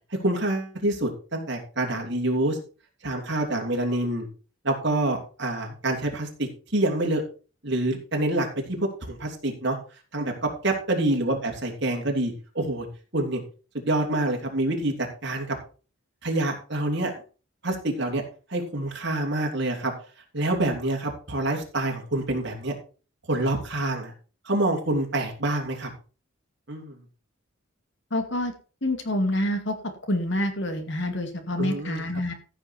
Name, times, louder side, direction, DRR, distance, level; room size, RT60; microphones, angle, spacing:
voice 1, 0.2-2.6 3.0-4.3 4.6-7.2 7.6-9.8 10.1-12.9 13.1-13.4 13.7-15.6 16.2-17.1 17.6-18.2 18.5-19.9 20.3-22.7 23.3-24.1 24.4-25.9 26.7-27.0 31.6-32.0, right 1 dB, 55° right, 1 dB, 3.1 m, -27 dB
voice 2, 28.1-28.5 28.8-29.8 30.1-32.3, left 1 dB, 55° left, 7 dB, 2.2 m, -27 dB
14.5 x 6.6 x 4.4 m, 0.36 s
head